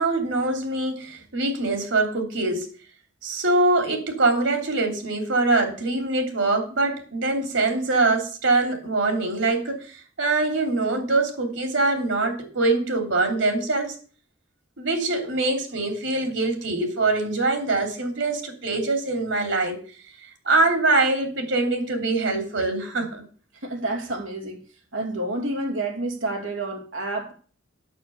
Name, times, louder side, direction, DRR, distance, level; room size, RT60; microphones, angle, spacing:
voice 1, 0.0-2.7 3.2-14.0 14.8-19.7 20.4-23.2, right 2 dB, 70° right, 3.1 m, -23 dB
voice 2, 23.5-24.6 24.9-27.3, right 2 dB, 90° right, 2.6 m, -29 dB
9.3 x 6.9 x 6.8 m
head